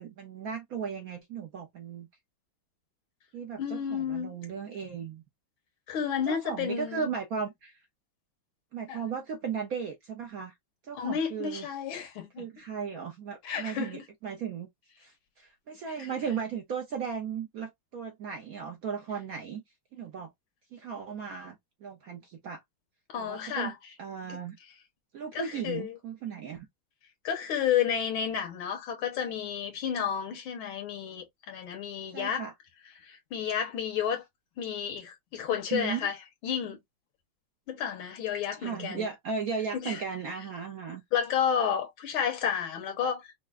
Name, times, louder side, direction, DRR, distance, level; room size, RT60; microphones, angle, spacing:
voice 1, 0.0-2.1 3.3-5.2 6.3-7.8 8.7-10.5 10.8-11.6 12.4-14.7 15.0-19.6 19.9-20.3 20.7-22.6 23.2-23.7 24.0-24.6 25.1-26.7 32.1-32.5 35.5-36.1 38.6-41.0, right 6 dB, 70° right, 0.8 m, -36 dB
voice 2, 3.6-4.4 5.9-7.1 8.9-9.0 10.9-12.5 13.4-14.0 16.0-16.1 23.1-23.8 24.3-24.4 25.3-26.0 27.2-32.5 33.0-34.2 34.6-36.2 36.4-36.8 37.7-39.1 39.7-40.0 41.1-43.3, left 8 dB, 85° left, 1.9 m, -31 dB
5.7 x 2.1 x 2.4 m
omnidirectional pair, 2.2 m